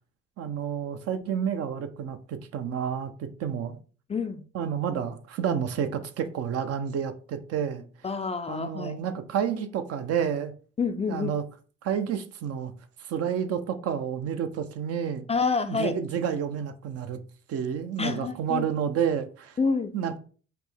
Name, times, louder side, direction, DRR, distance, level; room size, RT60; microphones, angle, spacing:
voice 1, 0.4-3.8 4.5-7.9 8.5-10.5 11.1-11.4 11.8-12.7 13.0-15.3 15.7-17.2 17.5-19.6 19.9-20.2, right 8 dB, 55° right, 0.5 m, -30 dB
voice 2, 4.1-4.4 8.0-8.9 10.8-11.3 15.3-16.0 18.0-18.7 19.6-19.9, left 4 dB, 20° left, 0.3 m, -28 dB
4.2 x 2.0 x 3.3 m
hypercardioid pair, 60°, 30 cm